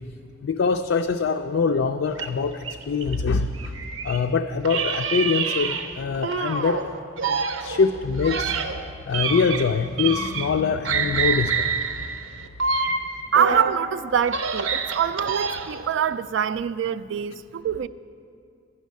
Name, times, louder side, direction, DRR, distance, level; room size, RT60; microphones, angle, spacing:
voice 1, 0.4-3.7 4.0-6.9 7.3-7.4 7.6-8.6 9.1-11.7, left 5 dB, 70° left, 0.4 m, -24 dB
sound 1, 2.1-4.2 4.6-6.8 7.2-10.6 10.8-13.8 14.2-15.9, right 5 dB, 90° right, 0.7 m, -27 dB
voice 2, 13.3-17.9, right 8 dB, 65° right, 0.3 m, -24 dB
11.0 x 6.4 x 9.3 m
head